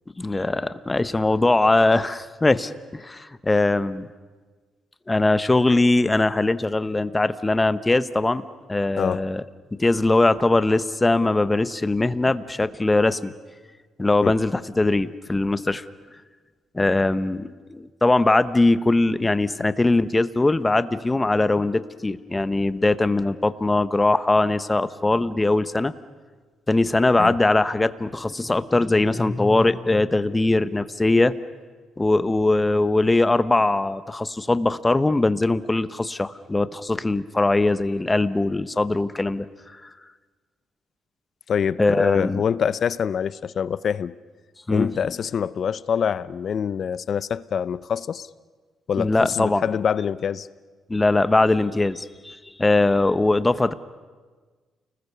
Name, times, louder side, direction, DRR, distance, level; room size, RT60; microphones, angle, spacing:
voice 1, 0.2-4.1 5.1-9.4 9.8-13.3 14.0-15.8 16.7-25.9 26.7-31.3 32.0-39.5 41.8-42.4 44.7-44.9 49.0-49.6 50.9-53.7, left 2 dB, 15° left, 1.0 m, -21 dB
voice 2, 9.0-9.3 14.2-14.4 19.6-19.7 27.2-27.4 41.5-44.2 44.7-48.3 48.9-50.5, left 7 dB, 55° left, 0.6 m, -25 dB
29.5 x 20.5 x 6.9 m
cardioid pair, 90°, 0 cm